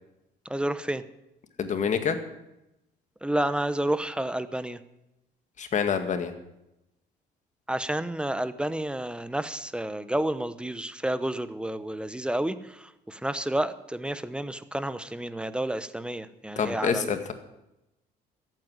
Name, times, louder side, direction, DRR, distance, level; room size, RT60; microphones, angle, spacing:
voice 1, 0.5-1.0 3.2-4.8 7.7-17.2, right 1 dB, 5° right, 13 dB, 0.9 m, -30 dB
voice 2, 1.6-2.2 5.6-6.3 16.6-17.3, left 6 dB, 45° left, 8 dB, 2.0 m, -27 dB
14.0 x 9.1 x 9.8 m, 0.91 s
cardioid pair, 110°, 17 cm